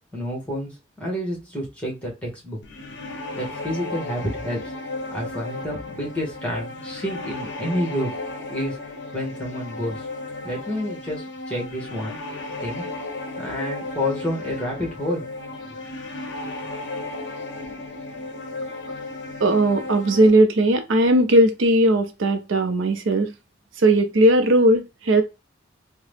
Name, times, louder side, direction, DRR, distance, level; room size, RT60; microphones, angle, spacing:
voice 1, 0.1-2.6 3.4-4.7 5.1-8.1 8.5-8.8 9.1-10.1 10.4-12.8 13.4-15.2, equal, 5° left, 1.0 m, -29 dB
sound 1, 2.6-20.3, left 2 dB, 65° left, 0.5 m, -34 dB
voice 2, 19.4-23.3 23.8-25.2, right 1 dB, 85° right, 0.5 m, -18 dB
2.8 x 2.0 x 3.2 m
head